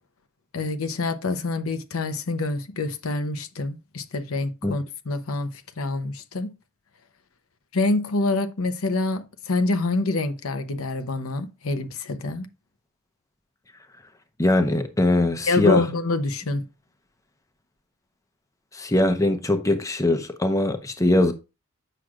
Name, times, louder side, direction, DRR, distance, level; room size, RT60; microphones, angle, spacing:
voice 1, 0.5-6.5 7.7-12.5 15.5-16.6, left 3 dB, 80° left, 0.8 m, -26 dB
voice 2, 14.4-15.8 18.7-21.3, left 1 dB, 15° left, 0.6 m, -21 dB
7.9 x 6.1 x 2.4 m
head